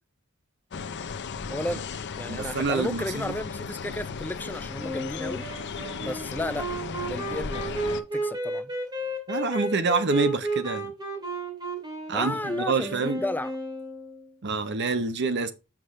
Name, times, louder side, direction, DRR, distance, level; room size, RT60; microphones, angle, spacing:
sound 1, 0.7-8.0, left 5 dB, 55° left, 0.6 m, -36 dB
voice 1, 1.5-1.9 2.2-5.5 6.0-6.7 7.1-8.7 12.1-13.5, left 1 dB, 10° left, 0.4 m, -33 dB
voice 2, 2.3-3.3 9.3-10.9 12.1-13.2 14.4-15.5, right 4 dB, 55° right, 0.8 m, -27 dB
Wind instrument woodwind instrument, 4.8-14.3, right 2 dB, 20° right, 2.6 m, -33 dB
8.1 x 6.0 x 3.1 m
head